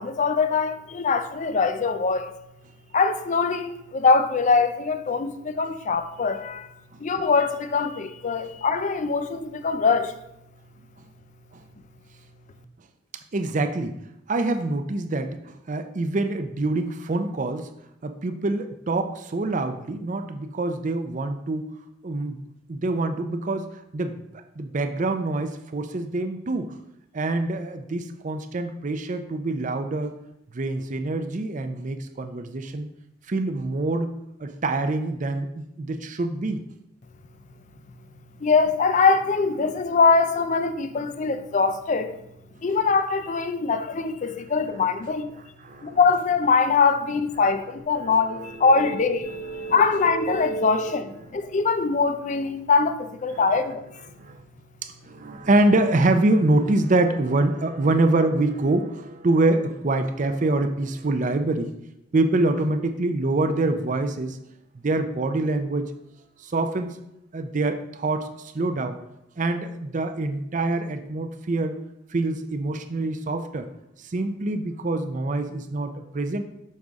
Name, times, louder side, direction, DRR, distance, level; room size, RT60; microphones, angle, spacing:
voice 1, 0.0-2.3 2.9-6.7 7.0-10.2 38.4-42.2 42.6-45.3 45.8-53.9, left 4 dB, 35° left, 0.4 m, -22 dB
voice 2, 13.3-14.0 14.3-17.7 18.0-21.7 22.0-22.4 22.7-24.2 24.6-26.8 27.1-30.1 30.5-32.9 33.3-34.1 34.4-36.6 45.6-46.0 48.0-48.1 49.3-49.7 54.2-54.4 55.0-61.7 62.1-64.4 64.7-65.9 66.4-67.0 67.3-69.0 69.4-71.8 72.1-73.7 74.0-76.4, right 2 dB, 40° right, 0.5 m, -25 dB
6.3 x 5.4 x 3.5 m
head